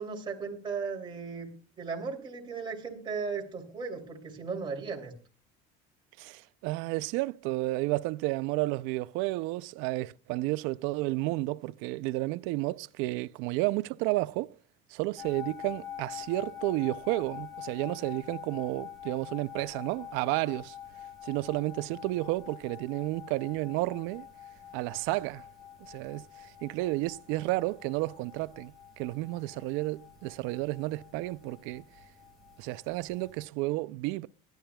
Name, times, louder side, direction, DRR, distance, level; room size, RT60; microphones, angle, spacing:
voice 1, 0.0-1.5 1.8-5.1, right 5 dB, 25° right, 2.9 m, -36 dB
voice 2, 6.2-14.5 14.9-20.7 21.2-24.3 24.7-25.4 25.9-31.8 32.6-34.3, right 19 dB, 75° right, 0.5 m, -32 dB
sound 1, 15.2-33.4, left 10 dB, ahead, 5.0 m, -46 dB
22.5 x 10.5 x 2.3 m
cardioid pair, 155°, 21 cm